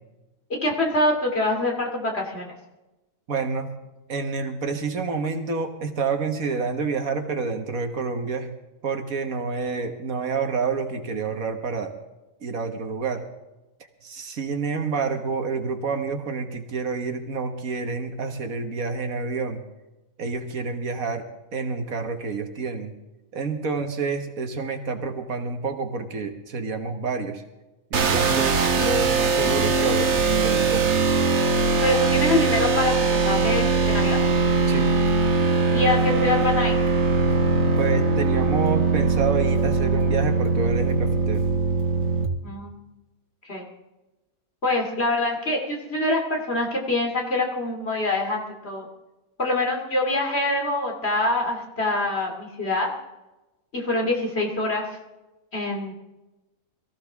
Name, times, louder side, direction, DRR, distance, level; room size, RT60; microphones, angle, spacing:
voice 1, 0.5-2.5 31.8-34.2 35.7-36.8 42.4-42.8 43.4-43.7 44.6-48.9 49.4-52.9 53.7-54.8 55.5-55.9, left 2 dB, 45° left, 0 dB, 3.0 m, -25 dB
voice 2, 3.3-3.7 4.1-8.5 8.8-11.9 12.4-13.2 14.0-19.6 20.2-21.3 21.5-22.9 23.3-27.4 27.9-31.0 34.7-34.9 37.8-41.4, right 4 dB, 70° right, 6 dB, 1.8 m, -28 dB
sound 1, 27.9-42.3, right 4 dB, 55° right, 1.3 m, -21 dB
22.5 x 15.0 x 3.6 m, 1.0 s
omnidirectional pair, 1.5 m